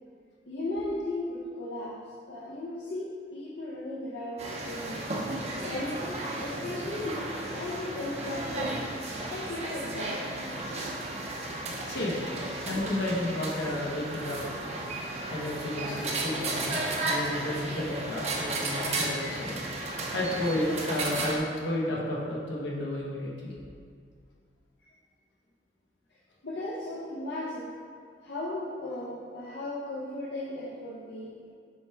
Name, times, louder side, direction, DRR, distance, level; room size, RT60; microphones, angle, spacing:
voice 1, 0.5-2.0 2.3-5.0 5.6-8.8 9.3-10.3 26.4-27.8 28.2-31.4, left 1 dB, 65° left, -6 dB, 0.7 m, -36 dB
sound 1, 4.4-21.4, right 2 dB, 35° right, 0.7 m, -34 dB
voice 2, 11.9-12.2 12.6-14.4 15.3-16.8 17.1-19.6 20.1-23.5, left 1 dB, 85° left, -4 dB, 1.3 m, -32 dB
7.1 x 4.4 x 3.4 m, 2.2 s
head